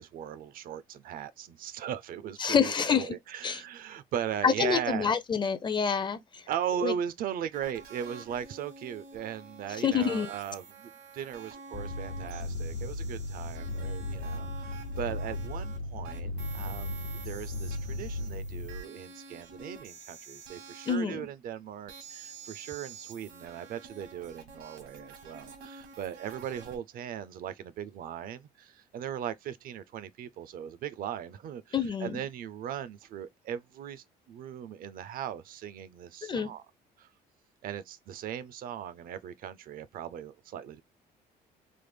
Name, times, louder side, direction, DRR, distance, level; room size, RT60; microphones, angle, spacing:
voice 1, 0.0-5.1 6.5-36.6 37.0-37.1 37.6-40.8, right 9 dB, 60° right, 0.4 m, -38 dB
voice 2, 2.4-3.2 3.4-3.6 4.4-6.4 6.8-6.9 9.8-10.3 20.9-21.3 31.7-32.2 36.2-36.5, left 6 dB, 25° left, 0.5 m, -27 dB
sound 1, 7.5-15.8 16.0-20.9 21.9-26.8, right 5 dB, 85° right, 1.1 m, -49 dB
sound 2, 11.7-18.8, left 2 dB, 75° left, 0.8 m, -36 dB
3.3 x 2.0 x 3.2 m
cardioid pair, 110°, 17 cm